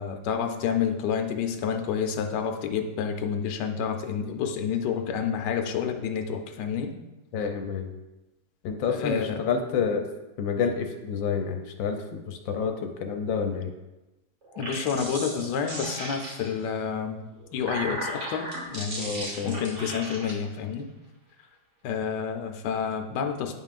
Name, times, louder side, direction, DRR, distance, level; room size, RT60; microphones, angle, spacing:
voice 1, 0.0-6.9 8.9-9.2 14.6-19.2 19.4-20.9 21.8-23.5, left 7 dB, 75° left, 5 dB, 1.3 m, -29 dB
voice 2, 7.3-7.9 8.6-10.0 10.4-13.7 19.0-19.6, left 6 dB, 90° left, 5 dB, 1.4 m, -29 dB
sound 1, 14.4-16.7 17.3-20.3, right 1 dB, 40° right, 1.5 m, -36 dB
9.7 x 5.5 x 2.4 m, 1.0 s
omnidirectional pair, 2.0 m